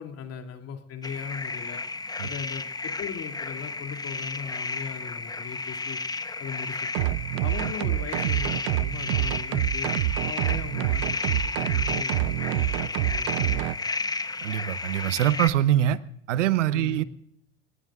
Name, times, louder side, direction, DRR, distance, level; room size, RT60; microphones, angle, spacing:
voice 1, 0.0-1.8 2.2-6.0 6.4-7.1 7.4-9.9 10.2-13.8 16.7-17.1, left 7 dB, 40° left, 2.8 m, -39 dB
sound 1, 1.0-15.5, left 3 dB, 10° left, 1.0 m, -32 dB
sound 2, 6.9-13.8, right 17 dB, 60° right, 0.6 m, -27 dB
voice 2, 14.4-16.0 16.3-17.0, right 12 dB, 80° right, 1.0 m, -23 dB
28.5 x 19.5 x 2.5 m
hypercardioid pair, 85°, 36 cm